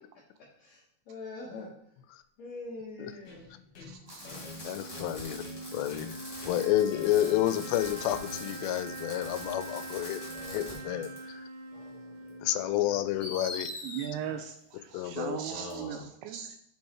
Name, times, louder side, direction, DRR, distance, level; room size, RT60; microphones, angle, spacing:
voice 1, 1.1-1.7 2.4-3.5 4.2-4.6 10.3-11.1 11.7-12.5 14.2-14.4 15.2-16.0, left 2 dB, 70° left, -4 dB, 1.7 m, -44 dB
sound 1, 3.3-11.0, left 6 dB, 50° left, 3.0 m, -50 dB
voice 2, 3.8-4.4 4.7-4.8 13.8-16.6, right 9 dB, 85° right, 7 dB, 2.3 m, -38 dB
Fireworks, 4.1-10.8 11.0-11.2 12.3-12.4 13.2-14.1 15.7-15.8, left 1 dB, 25° left, 1.1 m, -44 dB
sound 2, 4.2-13.6, right 2 dB, 65° right, 1.5 m, -44 dB
voice 3, 4.6-5.4 5.7-10.2 10.5-11.5 12.4-13.8 14.9-15.4, left 13 dB, 90° left, 11 dB, 2.7 m, -30 dB
8.0 x 4.6 x 4.3 m, 0.70 s
omnidirectional pair, 4.9 m